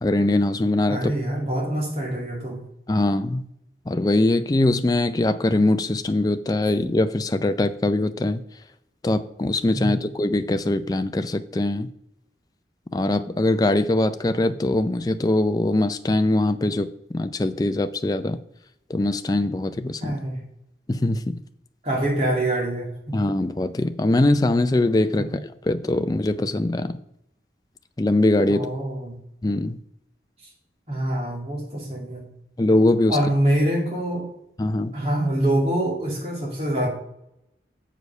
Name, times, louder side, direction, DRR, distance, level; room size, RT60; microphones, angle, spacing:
voice 1, 0.0-1.0 2.9-3.4 3.9-8.4 9.0-11.9 12.9-18.4 18.9-20.1 20.9-21.4 23.1-26.9 28.0-28.7 29.4-29.8 32.6-33.2 34.6-34.9, left 2 dB, 20° left, 10 dB, 0.4 m, -22 dB
voice 2, 0.9-2.6 9.7-10.0 20.0-20.4 21.8-23.1 25.2-25.3 28.5-29.1 30.9-32.2 33.1-34.2 34.9-36.9, right 1 dB, 35° right, -2 dB, 2.3 m, -25 dB
8.0 x 5.1 x 5.4 m, 0.80 s
head